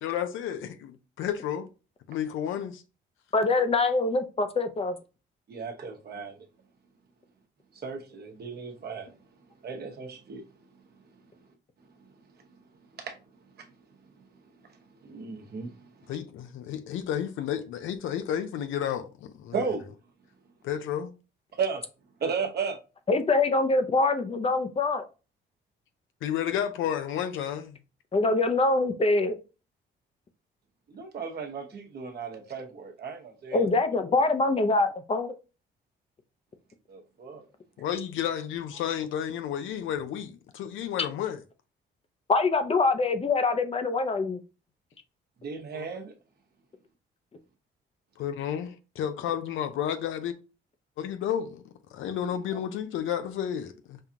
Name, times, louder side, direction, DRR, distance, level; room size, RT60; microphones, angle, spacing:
voice 1, 0.0-1.7 2.1-2.8 16.1-19.7 20.6-21.1 26.2-27.8 37.8-41.4 45.7-45.9 48.2-50.3 51.0-54.0, left 9 dB, 85° left, 0.6 m, -32 dB
voice 2, 3.3-5.0 23.1-25.0 28.1-29.4 33.5-35.3 42.3-44.4, left 3 dB, 30° left, 0.6 m, -24 dB
voice 3, 5.5-6.4 7.7-9.1 9.6-10.5 11.0-11.2 12.9-13.2 13.6-13.7 14.7-16.1 19.5-19.8 21.5-21.8 22.2-22.8 30.9-33.6 36.9-37.4 45.4-46.1 52.5-52.6, right 5 dB, 55° right, 1.0 m, -35 dB
5.5 x 2.4 x 2.8 m
cardioid pair, 90°, 20 cm